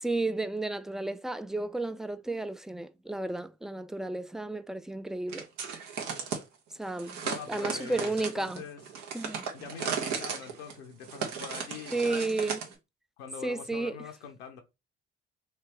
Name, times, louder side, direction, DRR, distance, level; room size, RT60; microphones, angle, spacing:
voice 1, 0.0-5.5 6.8-7.2 7.5-8.6 9.1-9.5 11.9-12.6 13.4-13.9, right 2 dB, ahead, 0.3 m, -32 dB
sound 1, 5.3-6.4 7.0-12.7, right 6 dB, 70° right, 1.0 m, -36 dB
voice 2, 7.2-8.8 9.5-12.5 13.2-14.6, left 6 dB, 85° left, 0.6 m, -44 dB
3.1 x 2.8 x 3.3 m
hypercardioid pair, 55°, 30 cm